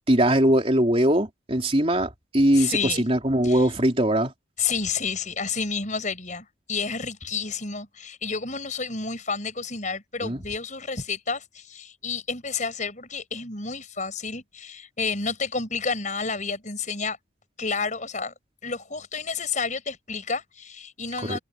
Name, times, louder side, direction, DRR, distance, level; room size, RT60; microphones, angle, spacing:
voice 1, 0.1-4.3 10.2-10.4 21.3-21.4, right 1 dB, 30° right, 3.8 m, -21 dB
voice 2, 2.5-3.0 3.4-3.7 4.6-17.2 17.6-18.3 18.6-21.4, left 5 dB, 40° left, 6.5 m, -30 dB
head